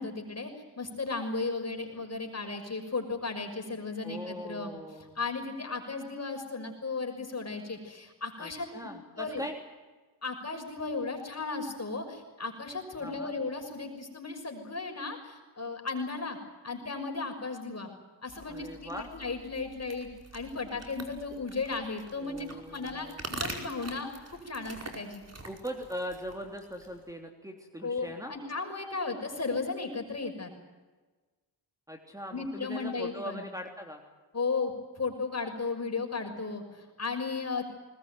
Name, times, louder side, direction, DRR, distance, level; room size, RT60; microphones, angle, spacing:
voice 1, 0.0-4.7 5.1-8.9 9.1-9.4 10.2-16.4 16.6-17.9 18.2-25.2 27.8-30.5 32.3-33.4 34.3-37.6, left 4 dB, 35° left, 4 dB, 6.1 m, -35 dB
voice 2, 4.0-5.2 8.4-9.6 13.0-13.3 18.5-19.1 22.2-23.3 25.4-28.3 31.9-34.0, equal, 5° right, 3 dB, 3.2 m, -41 dB
sound 1, 18.3-27.1, right 2 dB, 35° right, 5.0 m, -45 dB
21.0 x 20.5 x 9.3 m, 1.3 s
cardioid pair, 70°, 45 cm